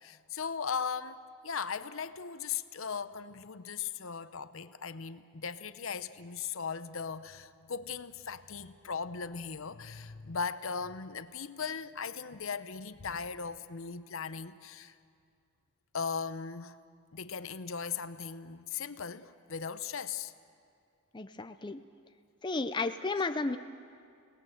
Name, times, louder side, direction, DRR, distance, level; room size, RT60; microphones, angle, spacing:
voice 1, 0.0-14.9 15.9-16.8 17.1-20.3, left 6 dB, 65° left, 13 dB, 0.8 m, -38 dB
voice 2, 21.1-21.8 22.4-23.6, left 3 dB, 20° left, 8 dB, 0.5 m, -33 dB
30.0 x 18.5 x 7.8 m, 2.3 s
head